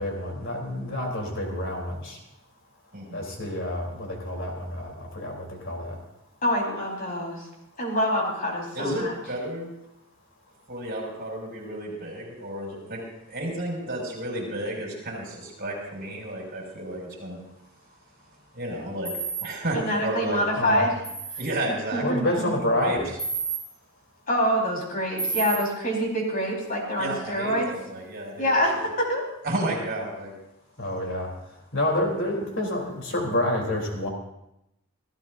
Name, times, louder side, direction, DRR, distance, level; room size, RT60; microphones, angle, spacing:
voice 1, 0.0-2.2 3.1-5.9 20.5-20.9 22.0-23.1 30.8-31.3 31.7-34.1, left 1 dB, 55° left, 0 dB, 3.5 m, -28 dB
voice 2, 2.9-3.3 8.7-9.7 10.7-13.0 13.3-17.4 18.5-19.1 19.4-20.6 21.4-22.0 22.7-23.0 27.0-28.8 29.4-30.3, right 1 dB, 40° right, -2 dB, 6.2 m, -32 dB
voice 3, 6.4-7.4 7.8-9.1 19.7-20.9 21.9-22.5 24.3-27.7 28.4-29.2, equal, 40° left, -2 dB, 4.6 m, -26 dB
sound 1, 19.0-19.4 21.0-21.4 23.2-23.6 25.2-25.6, right 4 dB, 5° left, 2.7 m, -29 dB
27.0 x 15.5 x 2.7 m, 0.85 s
head